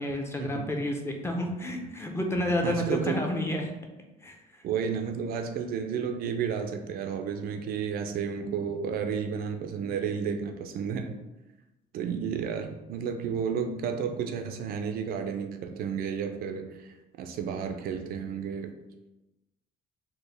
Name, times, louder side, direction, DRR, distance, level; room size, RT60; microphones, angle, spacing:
voice 1, 0.0-3.7 4.2-4.4, left 1 dB, 15° left, 2 dB, 0.5 m, -30 dB
voice 2, 2.6-3.2 4.6-11.2 11.9-18.7, right 6 dB, 65° right, 6 dB, 0.4 m, -32 dB
4.3 x 2.1 x 3.2 m, 1.0 s
cardioid pair, 110°, 17 cm